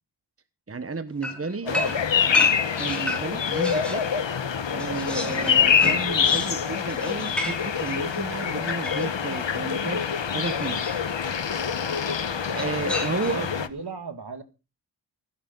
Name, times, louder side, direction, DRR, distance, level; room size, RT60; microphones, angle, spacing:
voice 1, 0.7-1.8 2.8-4.1 4.7-10.8 12.5-13.7, right 3 dB, 35° right, 1.2 m, -32 dB
sound 1, 1.2-4.1 4.5-9.5 10.6-11.2 12.5-13.5, left 1 dB, ahead, 5.5 m, -34 dB
voice 2, 1.6-1.9 13.2-14.4, right 5 dB, 65° right, 2.2 m, -36 dB
sound 2, 1.7-13.7, left 7 dB, 90° left, 1.2 m, -25 dB
16.5 x 15.5 x 4.0 m
wide cardioid pair, 90°, 43 cm